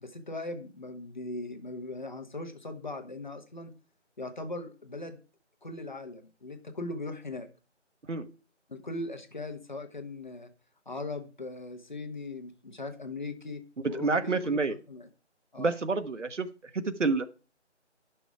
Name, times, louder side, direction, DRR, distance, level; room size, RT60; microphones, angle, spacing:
voice 1, 0.0-3.7 4.2-5.2 5.6-7.5 8.7-10.5 10.8-13.6 13.9-15.1 15.5-15.7, left 2 dB, 40° left, 7 dB, 1.3 m, -39 dB
voice 2, 13.8-14.7 15.6-16.5 16.7-17.2, right 3 dB, 80° right, 9 dB, 1.2 m, -28 dB
11.0 x 6.0 x 4.8 m, 0.35 s
figure-of-eight pair, 175°, 36 cm